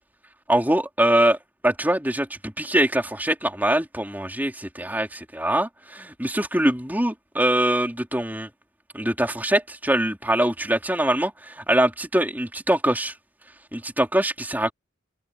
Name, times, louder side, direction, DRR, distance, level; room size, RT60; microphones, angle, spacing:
voice 1, 0.5-1.4 1.6-8.5 8.9-13.1 13.7-14.7, right 1 dB, 10° right, 3.7 m, -23 dB
head